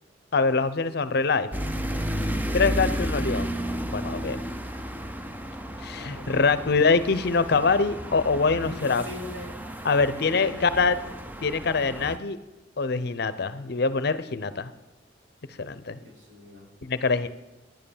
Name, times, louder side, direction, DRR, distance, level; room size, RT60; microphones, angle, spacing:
voice 1, 0.3-1.5 2.5-3.5 3.9-4.4 5.8-9.0 9.8-11.0 11.4-12.4 12.8-14.7 15.6-16.0 16.8-17.3, left 4 dB, 60° left, 14 dB, 0.7 m, -24 dB
sound 1, 1.5-12.2, equal, 10° right, 0.6 m, -32 dB
voice 2, 5.9-6.6 8.6-9.6 10.2-11.0 16.0-16.7, left 1 dB, 70° right, -3 dB, 4.4 m, -42 dB
10.5 x 9.2 x 7.2 m, 1.1 s
head